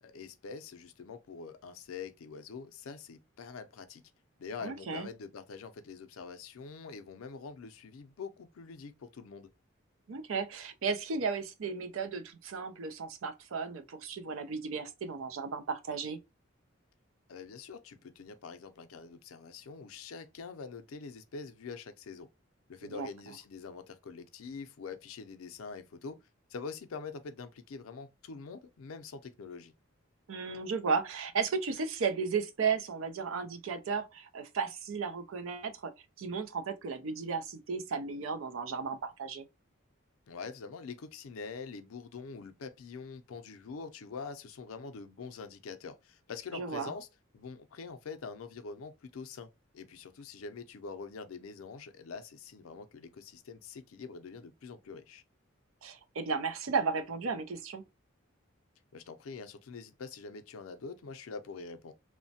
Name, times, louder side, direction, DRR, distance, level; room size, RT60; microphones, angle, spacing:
voice 1, 0.0-4.0 4.4-9.5 17.3-22.3 22.7-26.2 26.5-29.7 40.3-47.1 47.3-55.2 58.9-61.9, left 5 dB, 90° left, 0.4 m, -45 dB
voice 2, 4.6-5.1 10.1-16.2 22.8-23.1 30.3-35.9 36.2-39.5 46.5-46.9 55.8-57.8, right 5 dB, 80° right, 0.5 m, -34 dB
3.0 x 2.1 x 2.7 m
head